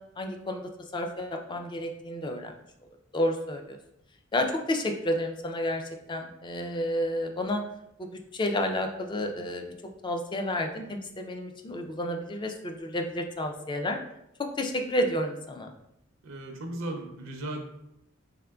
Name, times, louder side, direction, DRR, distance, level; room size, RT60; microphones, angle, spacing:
voice 1, 0.2-2.5 3.1-3.8 4.3-5.8 6.1-7.6 8.0-9.7 10.0-14.0 14.4-15.7, left 1 dB, 25° left, 4 dB, 0.4 m, -30 dB
voice 2, 16.2-17.6, right 1 dB, 80° right, 3 dB, 0.5 m, -36 dB
3.6 x 3.5 x 2.2 m, 0.80 s
head